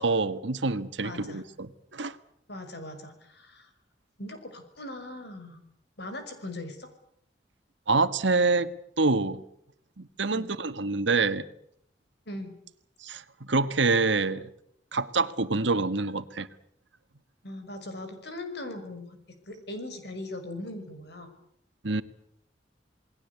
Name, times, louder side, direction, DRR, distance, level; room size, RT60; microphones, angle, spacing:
voice 1, 0.0-2.2 7.9-8.7 9.0-9.4 10.0-11.4 13.0-14.4 14.9-16.5 21.8-22.0, right 3 dB, 85° right, 1.5 m, -26 dB
voice 2, 1.0-1.4 2.5-3.7 4.2-5.6 6.0-6.9 10.3-10.5 12.3-12.6 17.4-19.2 19.5-21.3, left 1 dB, 65° left, 5.9 m, -39 dB
28.5 x 20.5 x 8.4 m
head